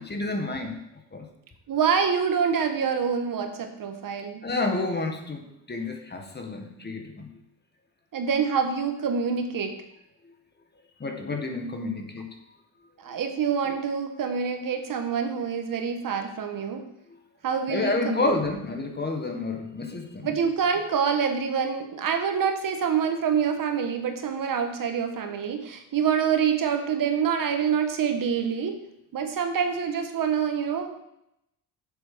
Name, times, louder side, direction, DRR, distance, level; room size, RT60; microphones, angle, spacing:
voice 1, 0.1-0.8 1.1-1.3 4.4-7.3 11.0-12.3 17.7-20.3, left 3 dB, 25° left, 4 dB, 1.7 m, -29 dB
voice 2, 1.7-4.4 8.1-9.7 13.0-16.8 17.4-18.4 20.2-28.8 29.1-31.0, right 7 dB, 55° right, 6 dB, 1.5 m, -26 dB
7.7 x 7.3 x 6.8 m, 0.81 s
cardioid pair, 100°, 40 cm